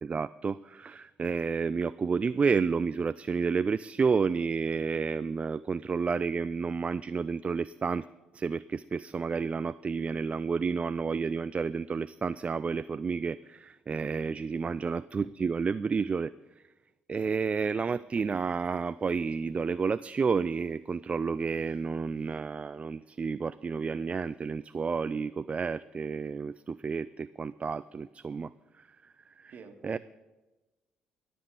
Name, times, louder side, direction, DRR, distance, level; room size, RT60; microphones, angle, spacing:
voice 1, 0.0-8.1 8.3-16.3 17.1-28.5 28.8-28.9 29.4-29.5 29.8-30.0, right 5 dB, 35° right, 16 dB, 0.3 m, -30 dB
voice 2, 29.5-30.0, right 5 dB, 55° right, 6 dB, 1.7 m, -49 dB
13.0 x 6.2 x 9.0 m, 1.1 s
hypercardioid pair, 50°, 4 cm